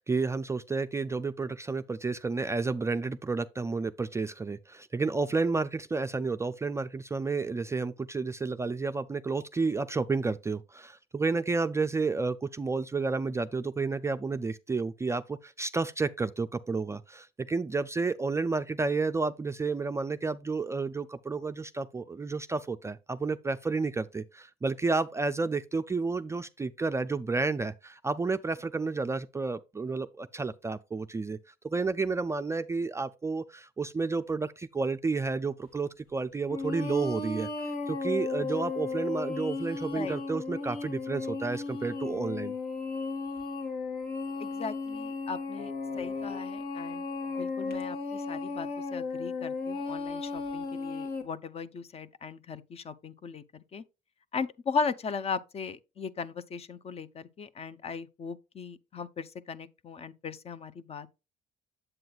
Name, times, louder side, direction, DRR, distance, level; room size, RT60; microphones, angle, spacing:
voice 1, 0.0-31.4 31.6-37.5 37.9-42.5, right 4 dB, 15° right, 0.3 m, -31 dB
sound 1, 36.5-51.2, left 4 dB, 65° left, 1.6 m, -35 dB
voice 2, 44.4-47.0 47.4-53.4 53.7-53.8 54.3-61.2, left 5 dB, 35° left, 0.6 m, -37 dB
7.7 x 7.7 x 2.3 m
cardioid pair, 110°, 17 cm